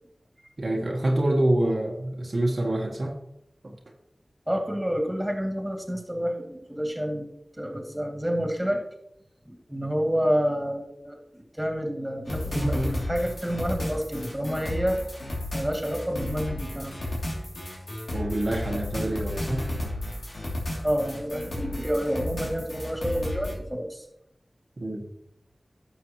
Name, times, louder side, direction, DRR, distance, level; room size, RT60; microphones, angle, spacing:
voice 1, 0.6-3.2 3.6-3.8 18.1-19.6 24.8-25.0, right 1 dB, 60° right, -1 dB, 1.3 m, -26 dB
voice 2, 4.5-7.3 7.6-8.8 9.4-15.0 15.5-17.0 20.8-24.0, equal, 10° right, 1 dB, 2.5 m, -29 dB
sound 1, 12.2-23.5, left 1 dB, 80° left, 3.0 m, -32 dB
11.5 x 7.1 x 3.1 m, 0.80 s
wide cardioid pair, 45°, 0 cm